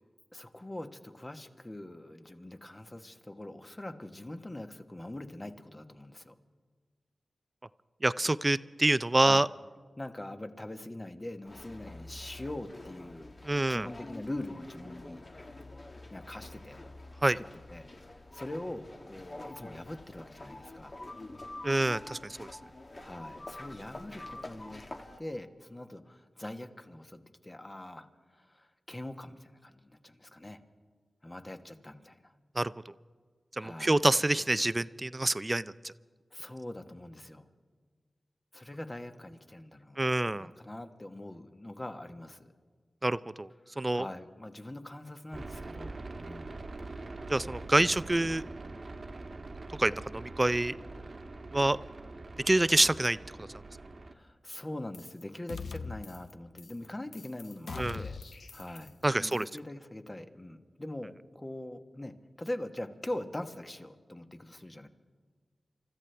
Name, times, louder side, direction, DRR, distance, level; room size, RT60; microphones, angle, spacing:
voice 1, 0.3-6.3 9.1-9.5 10.0-13.3 13.7-15.2 16.1-16.8 17.4-20.9 23.0-24.8 25.2-30.6 31.2-32.3 33.6-34.0 36.3-37.4 38.5-40.1 40.3-42.5 43.6-46.6 47.8-47.9 48.2-48.4 54.1-58.2 58.5-64.9, left 1 dB, 25° left, 7 dB, 1.2 m, -43 dB
voice 2, 8.0-9.5 13.4-13.9 17.2-17.4 21.6-22.5 32.6-32.7 33.6-35.9 40.0-40.5 43.0-43.5 43.8-44.0 47.3-48.4 49.8-50.7 51.5-51.8 52.5-53.2 57.8-58.0 59.0-59.5, right 2 dB, 30° right, 17 dB, 0.4 m, -27 dB
sound 1, 11.4-25.2, left 2 dB, 45° left, 1.2 m, -47 dB
sound 2, 45.3-54.1, right 2 dB, 55° right, 1.2 m, -43 dB
sound 3, 54.9-55.2 55.5-56.3 56.6-56.9 57.1-59.0 59.3-59.6, left 4 dB, 80° left, 0.6 m, -42 dB
29.0 x 13.5 x 3.4 m, 1.5 s
cardioid pair, 50°, 0 cm